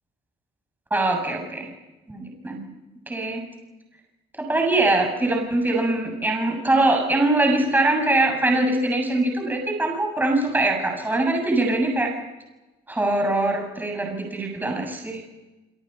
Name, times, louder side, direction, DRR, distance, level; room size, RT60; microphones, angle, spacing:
voice 1, 0.9-1.7 2.1-2.7 3.1-3.4 4.4-12.1 12.9-15.2, right 2 dB, 10° right, 2 dB, 7.4 m, -22 dB
26.5 x 26.0 x 5.7 m, 1.0 s
cardioid pair, 110°, 17 cm